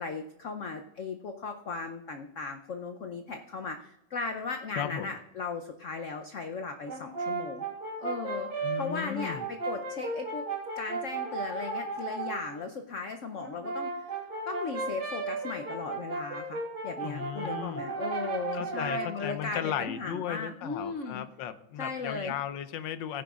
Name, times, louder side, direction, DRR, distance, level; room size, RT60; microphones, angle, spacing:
voice 1, 0.0-7.6 8.0-10.5 10.8-14.2 14.5-21.2 21.8-22.3, left 4 dB, 90° left, 6 dB, 0.6 m, -37 dB
voice 2, 4.8-5.1 8.6-9.5 17.0-17.8 18.5-23.2, left 10 dB, 75° left, 12 dB, 1.3 m, -36 dB
Brass instrument, 6.9-12.4 13.4-19.2, right 3 dB, 70° right, 3.2 m, -35 dB
16.0 x 10.0 x 2.4 m, 0.87 s
omnidirectional pair, 2.2 m